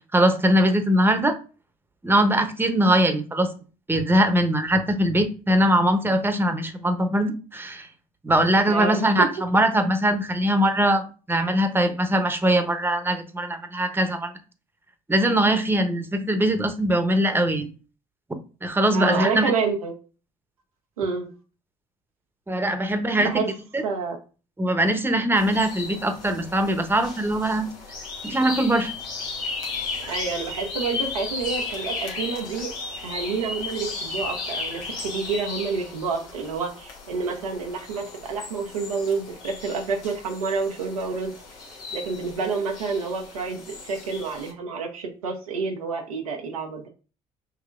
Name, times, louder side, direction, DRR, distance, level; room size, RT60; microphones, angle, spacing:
voice 1, 0.1-1.4 2.0-3.5 3.9-7.9 8.2-14.3 15.1-17.7 18.6-19.5 22.5-23.4 23.7-23.8 24.6-27.7 28.2-28.9, right 1 dB, 10° right, 8 dB, 0.8 m, -21 dB
voice 2, 8.7-9.3 18.9-19.9 21.0-21.3 23.2-23.5 23.8-24.2 30.0-32.7 33.0-41.3 41.9-46.9, right 5 dB, 90° right, 2 dB, 0.7 m, -28 dB
sound 1, 25.4-44.5, left 4 dB, 75° left, 1.1 m, -35 dB
5.7 x 2.8 x 2.5 m, 0.35 s
hypercardioid pair, 50°, 18 cm